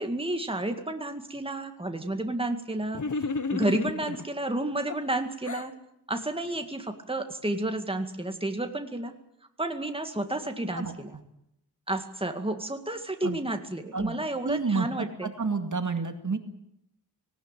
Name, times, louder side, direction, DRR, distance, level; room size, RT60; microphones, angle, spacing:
voice 1, 0.0-3.0 3.5-5.7 6.1-9.1 9.6-11.1 11.9-15.3, right 1 dB, 15° right, 5 dB, 2.1 m, -31 dB
sound 1, 2.9-4.3 4.9-5.7, left 4 dB, 45° left, 1.3 m, -32 dB
voice 2, 10.7-11.2 13.2-13.4 13.9-14.2 14.4-16.4, right 4 dB, 45° right, 7 dB, 2.1 m, -30 dB
19.0 x 18.5 x 9.1 m, 0.78 s
wide cardioid pair, 85°, 40 cm